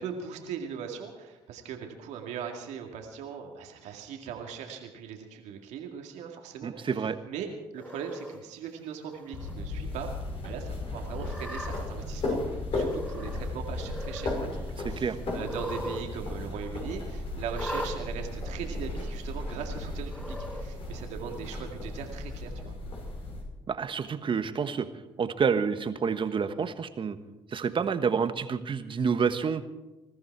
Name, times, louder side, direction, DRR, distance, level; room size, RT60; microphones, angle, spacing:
voice 1, 0.0-10.1 10.4-22.8, right 7 dB, 80° right, 2 dB, 2.2 m, -40 dB
voice 2, 6.6-7.2 14.8-15.2 23.7-24.9 25.2-27.2 27.5-29.6, right 6 dB, 45° right, 10 dB, 1.4 m, -28 dB
Cat, 7.8-8.4 9.1-9.5 9.9-10.0 11.1-11.8 12.8-13.5 13.7-14.3 15.4-16.0 16.3-16.4 17.5-17.9 18.8-18.9 20.0-20.6, equal, 10° left, 4.4 m, -39 dB
sound 1, 9.3-23.4, left 2 dB, 55° left, 5.8 m, -35 dB
21.0 x 14.0 x 4.7 m, 1.1 s
supercardioid pair, 65°, 12 cm